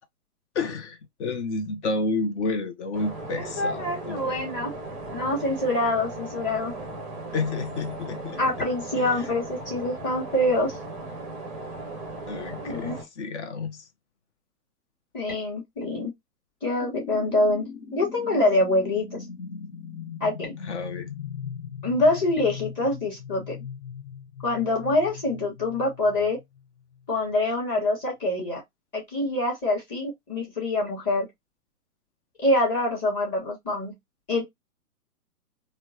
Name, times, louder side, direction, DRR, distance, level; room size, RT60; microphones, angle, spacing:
voice 1, 0.5-4.3 7.3-8.4 9.0-9.1 12.3-13.8 20.6-21.1, left 3 dB, 45° left, 0.8 m, -30 dB
sound 1, 2.9-13.0, right 2 dB, ahead, 0.6 m, -37 dB
voice 2, 3.4-4.7 5.1-6.7 8.4-10.8 12.6-13.0 15.1-16.1 16.6-17.7 17.9-19.0 20.2-20.5 21.8-23.6 24.4-26.4 27.1-28.6 28.9-31.3 32.4-33.9 34.3-34.4, left 1 dB, 25° left, 1.4 m, -25 dB
sound 2, 16.8-27.1, left 7 dB, 85° left, 1.0 m, -39 dB
4.2 x 2.2 x 2.7 m
hypercardioid pair, 135°, 47 cm